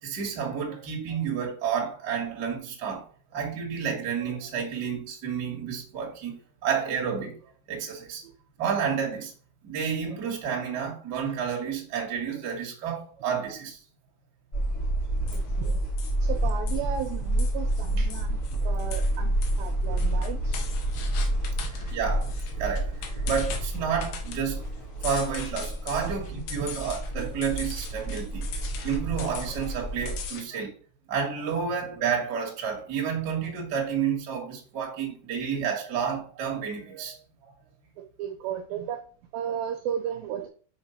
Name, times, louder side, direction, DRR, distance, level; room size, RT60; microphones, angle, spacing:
voice 1, 0.0-7.3 7.7-8.2 8.6-9.3 9.6-13.8 21.7-22.3 22.6-24.6 25.0-28.5 28.8-30.7 31.1-37.2 37.4-37.5, right 7 dB, 40° right, 1.6 m, -30 dB
sound 1, 14.5-30.2, right 1 dB, 30° left, 1.8 m, -29 dB
sound 2, 15.3-30.4, left 6 dB, 75° left, 3.2 m, -41 dB
voice 2, 15.3-15.8 16.2-20.6 26.0-26.1 26.5-26.8 38.2-39.0 39.3-40.5, right 9 dB, 75° right, 2.2 m, -34 dB
6.0 x 5.6 x 5.7 m
omnidirectional pair, 4.8 m